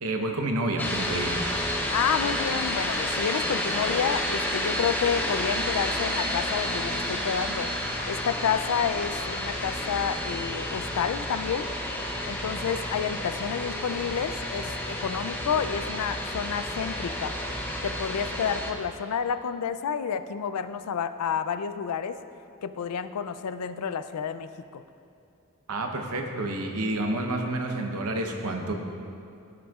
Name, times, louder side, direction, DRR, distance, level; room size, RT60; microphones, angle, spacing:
voice 1, 0.0-1.4 25.7-28.7, right 2 dB, 75° right, 3 dB, 0.9 m, -29 dB
sound 1, 0.8-18.7, left 1 dB, 10° left, 0.7 m, -30 dB
voice 2, 1.9-7.7 8.1-11.7 12.2-17.4 17.8-22.2 22.6-24.8, left 7 dB, 90° left, 11 dB, 0.4 m, -30 dB
15.0 x 6.2 x 2.4 m, 2.5 s
head